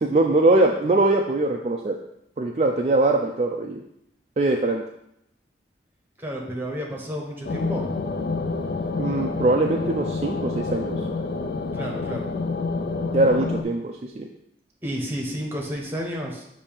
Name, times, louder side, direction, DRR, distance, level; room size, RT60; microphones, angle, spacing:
voice 1, 0.0-2.0 2.4-3.8 4.4-4.8 9.0-11.0 13.1-14.3, right 2 dB, 35° right, 2 dB, 0.3 m, -22 dB
voice 2, 6.2-7.9 11.7-12.3 14.8-16.4, equal, 10° right, -1 dB, 0.9 m, -31 dB
sound 1, 7.4-13.6, left 3 dB, 55° left, 0.4 m, -28 dB
6.9 x 2.7 x 5.2 m, 0.79 s
head